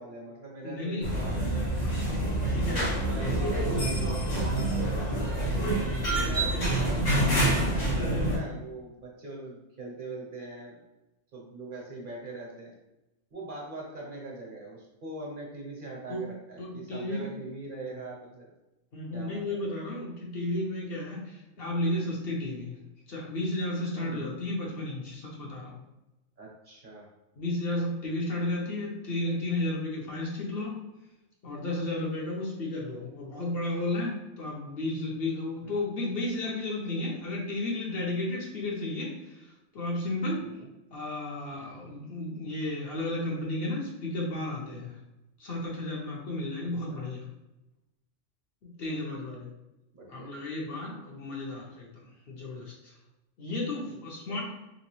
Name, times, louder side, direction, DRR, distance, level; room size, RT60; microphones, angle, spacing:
voice 1, 0.0-1.5 2.1-5.5 5.9-10.8 11.3-12.7 13.3-18.5 19.1-19.6 23.9-24.4 26.4-27.1 35.6-35.8 40.4-40.7 46.9-47.0 48.8-49.0 49.9-50.3 53.9-54.0, right 2 dB, 50° right, -3 dB, 0.9 m, -42 dB
voice 2, 0.6-1.1 1.8-3.0 16.1-16.2 16.6-17.3 18.9-22.8 23.1-25.8 27.4-30.7 31.4-40.4 40.9-44.9 45.4-47.2 48.6-49.5 50.1-52.9 53.4-54.4, left 2 dB, 55° left, -3 dB, 0.9 m, -33 dB
sound 1, 1.0-8.4, right 1 dB, 90° left, 1.5 m, -27 dB
3.0 x 2.9 x 3.0 m, 0.96 s
omnidirectional pair, 1.3 m